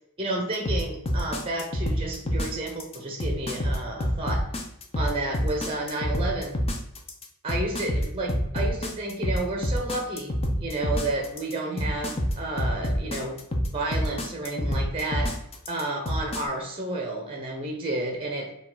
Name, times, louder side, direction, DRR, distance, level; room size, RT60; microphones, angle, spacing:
voice 1, 0.2-4.5 5.0-6.6 7.4-13.4 13.7-15.4 15.7-18.5, right 2 dB, 25° right, 1 dB, 0.7 m, -31 dB
sound 1, 0.7-16.4, equal, 25° left, 0.6 m, -27 dB
4.7 x 2.4 x 3.8 m, 0.81 s
head